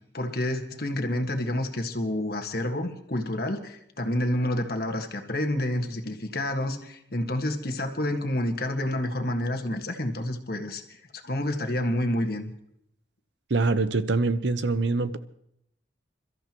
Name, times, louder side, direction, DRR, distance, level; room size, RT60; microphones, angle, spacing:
voice 1, 0.1-12.5, left 1 dB, 55° left, 5 dB, 1.6 m, -29 dB
voice 2, 13.5-15.2, right 3 dB, 70° right, 12 dB, 0.8 m, -24 dB
28.5 x 14.0 x 3.0 m, 0.75 s
head